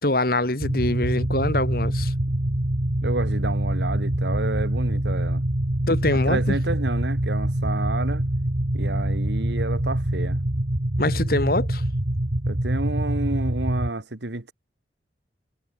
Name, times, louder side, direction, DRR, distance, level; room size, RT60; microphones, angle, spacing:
voice 1, 0.0-2.1 5.9-6.6 11.0-11.8, left 1 dB, 55° left, 3.5 m, -24 dB
sound 1, 0.6-13.9, right 1 dB, 55° right, 1.8 m, -25 dB
voice 2, 3.0-5.4 6.3-8.2 8.7-10.4 12.5-14.5, right 2 dB, 85° right, 1.8 m, -30 dB
head